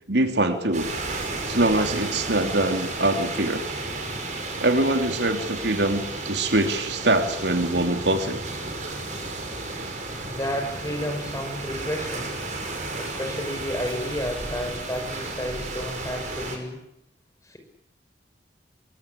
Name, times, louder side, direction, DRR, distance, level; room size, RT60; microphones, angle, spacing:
voice 1, 0.1-0.9 1.5-3.6 4.6-8.4, right 2 dB, 70° right, 6 dB, 3.1 m, -23 dB
sound 1, 0.7-16.6, right 2 dB, 40° right, 5.7 m, -33 dB
voice 2, 10.3-12.3 13.0-16.8 17.4-17.6, equal, 15° left, 5 dB, 6.0 m, -31 dB
25.0 x 23.5 x 8.7 m, 0.76 s
head